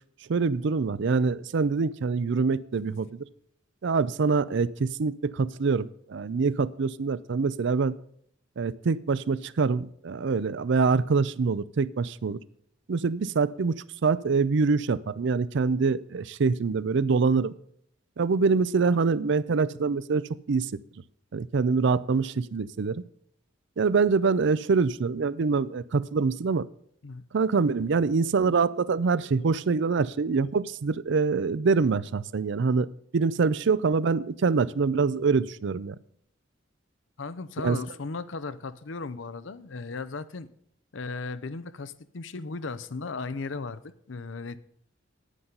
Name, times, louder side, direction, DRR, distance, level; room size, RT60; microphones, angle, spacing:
voice 1, 0.3-3.2 3.8-7.9 8.6-12.4 12.9-13.7 14.0-17.5 18.2-20.7 21.3-23.0 23.8-26.7 27.3-32.9 33.1-36.0 37.6-37.8, right 4 dB, 65° right, 0.5 m, -25 dB
voice 2, 37.2-40.5 40.9-44.6, left 4 dB, 70° left, 0.6 m, -36 dB
9.9 x 9.6 x 3.8 m
head